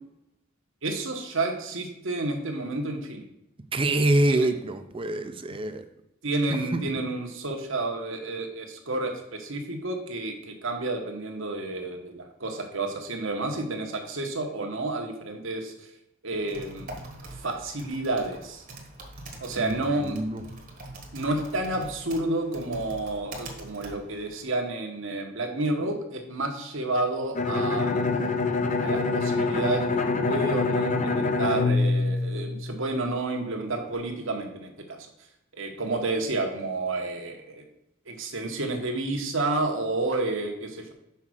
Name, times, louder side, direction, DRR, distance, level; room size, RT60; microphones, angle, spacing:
voice 1, 0.8-3.3 4.3-4.5 6.2-15.9 16.2-16.9 17.3-18.6 19.4-20.2 21.1-28.1 28.8-35.1 35.6-37.6 38.1-40.9, right 2 dB, 65° right, 3 dB, 1.3 m, -30 dB
voice 2, 3.7-5.8 6.7-6.8 19.5-19.8 20.0-20.4, right 1 dB, 25° right, 8 dB, 0.6 m, -25 dB
Typing, 16.3-24.5, right 1 dB, 40° right, 1.3 m, -43 dB
Bowed string instrument, 27.4-33.0, left 3 dB, 35° left, 0.6 m, -25 dB
5.7 x 4.7 x 6.3 m, 0.83 s
head